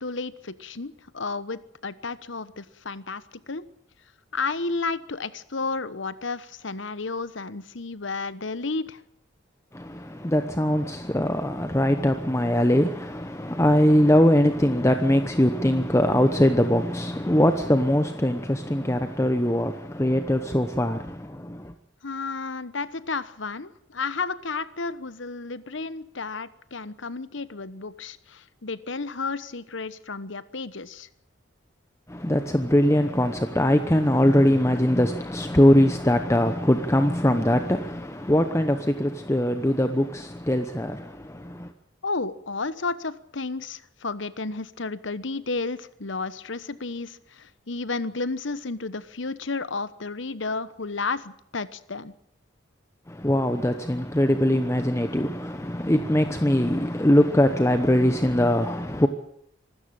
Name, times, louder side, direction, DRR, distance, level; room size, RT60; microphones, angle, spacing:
voice 1, 0.0-3.6 4.3-9.0 22.0-31.1 42.0-52.1, left 3 dB, 70° left, 1.1 m, -32 dB
voice 2, 9.7-21.7 32.1-41.7 53.1-59.1, left 1 dB, 15° left, 0.9 m, -22 dB
25.0 x 13.0 x 9.1 m
head